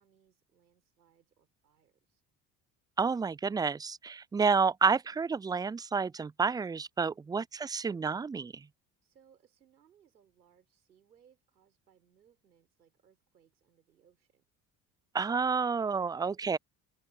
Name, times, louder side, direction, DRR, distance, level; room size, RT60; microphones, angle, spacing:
voice 1, 0.0-2.2 9.0-14.5, right 8 dB, 85° right, 5.4 m, -67 dB
voice 2, 3.0-8.5 15.1-16.6, right 5 dB, 10° right, 0.3 m, -30 dB
figure-of-eight pair, 55°, 50 cm